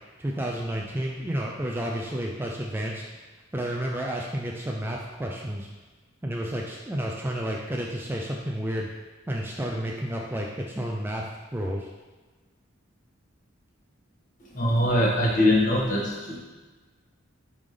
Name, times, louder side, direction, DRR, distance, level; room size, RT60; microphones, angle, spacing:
voice 1, 0.2-3.0 3.5-5.7 6.2-8.9 9.3-11.2 11.5-11.9, right 1 dB, 10° right, -1 dB, 0.4 m, -31 dB
voice 2, 14.4-16.4, left 1 dB, 40° left, -4 dB, 1.6 m, -22 dB
8.9 x 3.7 x 3.3 m, 1.3 s
head